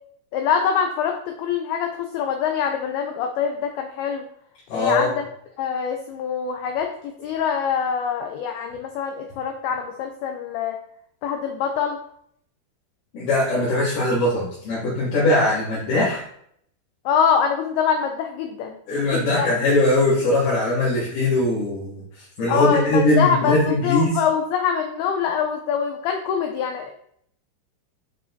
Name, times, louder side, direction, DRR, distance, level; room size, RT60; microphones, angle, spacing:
voice 1, 0.3-4.2 4.7-5.3 5.6-10.8 11.2-12.0 17.1-18.8 19.1-19.5 22.5-26.9, left 7 dB, 90° left, 4 dB, 2.2 m, -24 dB
voice 2, 4.7-5.1 13.1-16.2 18.9-21.9 22.4-24.1, left 2 dB, 65° left, -9 dB, 3.4 m, -20 dB
7.9 x 5.0 x 2.7 m, 0.68 s
omnidirectional pair, 5.2 m